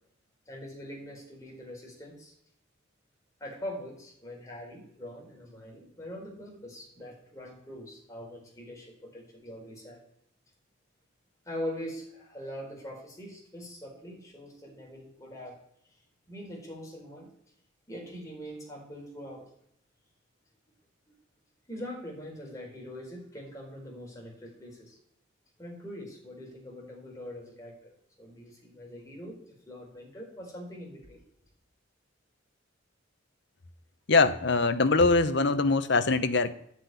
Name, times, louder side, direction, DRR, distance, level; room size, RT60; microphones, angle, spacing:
voice 1, 0.5-2.3 3.4-10.0 11.4-15.6 16.3-17.3 17.9-19.5 21.7-25.0 25.6-27.9 28.2-31.2, equal, 15° left, 4.6 m, -42 dB
voice 2, 34.1-36.6, left 3 dB, 60° left, 1.0 m, -23 dB
11.5 x 7.4 x 9.6 m
head